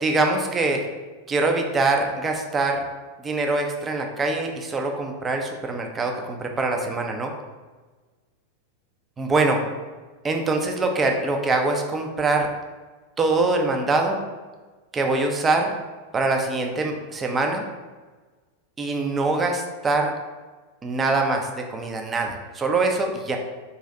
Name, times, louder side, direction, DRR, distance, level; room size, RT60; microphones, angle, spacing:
voice 1, 0.0-0.8 1.3-2.8 3.2-7.3 9.2-9.6 10.2-12.5 13.2-14.2 14.9-15.7 16.1-17.6 18.8-20.1 20.8-23.4, right 3 dB, 20° right, 3 dB, 0.6 m, -23 dB
4.1 x 3.2 x 3.7 m, 1.3 s
figure-of-eight pair, 90°, 0 cm